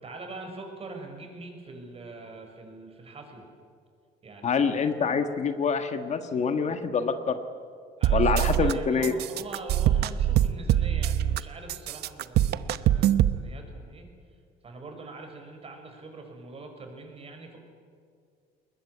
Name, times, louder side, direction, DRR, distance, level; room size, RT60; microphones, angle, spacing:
voice 1, 0.0-3.4 4.2-4.9 8.0-14.1 14.6-17.6, right 3 dB, 35° right, 4 dB, 5.9 m, -43 dB
voice 2, 4.4-7.4 8.1-9.1, left 5 dB, 45° left, 8 dB, 1.6 m, -26 dB
sound 1, 8.0-8.7 9.0-11.4 11.7-13.4, right 12 dB, 75° right, 0.9 m, -23 dB
21.0 x 21.0 x 9.9 m, 2.3 s
cardioid pair, 110°, 17 cm